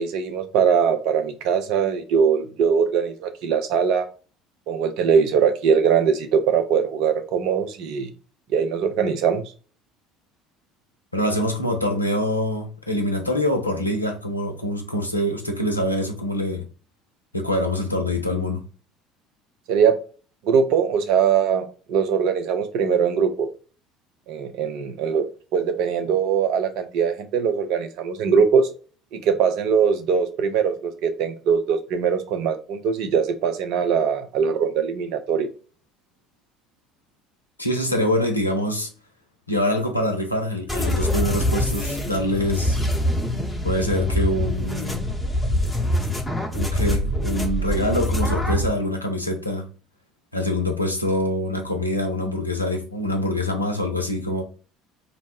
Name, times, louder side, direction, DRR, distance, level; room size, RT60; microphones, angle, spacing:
voice 1, 0.0-4.1 4.7-8.1 8.5-9.4 19.7-20.0 20.4-23.5 24.3-28.7 29.1-35.5, right 6 dB, 55° right, 0.4 m, -21 dB
voice 2, 11.1-16.6 17.3-18.7 37.6-38.9 39.5-42.8 43.6-45.1 46.5-49.7 50.3-54.4, left 1 dB, 90° left, 0.4 m, -25 dB
sound 1, 40.7-48.7, equal, 5° left, 0.8 m, -24 dB
2.4 x 2.0 x 3.3 m
figure-of-eight pair, 60°, 0 cm